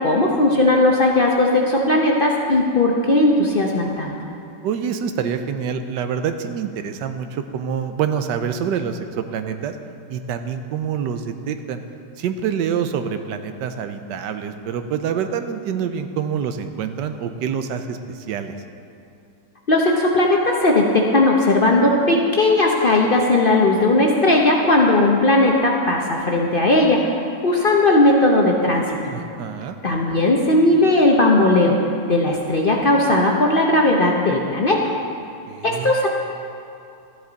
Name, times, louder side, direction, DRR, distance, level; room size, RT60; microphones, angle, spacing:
voice 1, 0.0-4.1 19.7-29.1 29.8-31.8 32.1-34.9 35.6-36.1, left 2 dB, 45° left, -1 dB, 0.7 m, -17 dB
voice 2, 4.6-9.8 10.1-11.8 12.2-18.5 29.1-29.8 35.5-35.9, right 7 dB, 90° right, 8 dB, 1.3 m, -26 dB
13.5 x 9.8 x 4.0 m, 2.6 s
omnidirectional pair, 1.9 m